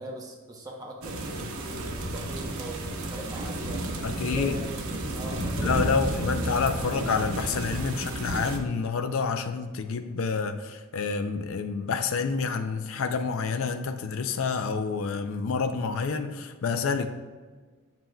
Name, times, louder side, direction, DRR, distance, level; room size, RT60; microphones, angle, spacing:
voice 1, 0.0-7.0, right 1 dB, 15° right, -2 dB, 0.7 m, -41 dB
sound 1, 1.0-8.6, right 1 dB, 90° right, 0.9 m, -32 dB
voice 2, 4.0-4.5 5.4-17.1, left 5 dB, 65° left, 8 dB, 0.4 m, -28 dB
7.5 x 7.3 x 2.2 m, 1.4 s
head